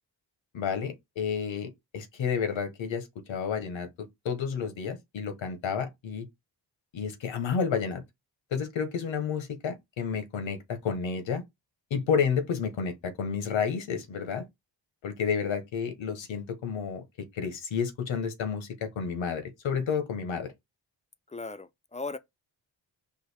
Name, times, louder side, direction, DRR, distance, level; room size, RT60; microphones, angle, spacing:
voice 1, 0.5-6.3 6.9-8.0 8.5-11.4 11.9-14.5 15.0-20.5, left 6 dB, 90° left, 1.0 m, -31 dB
voice 2, 21.3-22.2, left 3 dB, 15° left, 0.4 m, -37 dB
4.7 x 2.6 x 3.3 m
cardioid pair, 55°, 45 cm